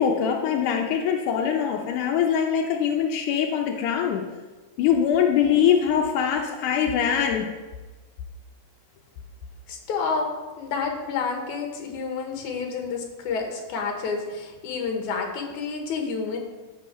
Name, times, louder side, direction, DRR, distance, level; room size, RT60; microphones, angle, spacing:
voice 1, 0.0-4.2 4.8-7.5, left 8 dB, 90° left, 1 dB, 2.3 m, -22 dB
voice 2, 9.7-16.4, left 5 dB, 75° left, 3 dB, 2.6 m, -29 dB
14.0 x 5.3 x 4.3 m, 1.3 s
omnidirectional pair, 3.5 m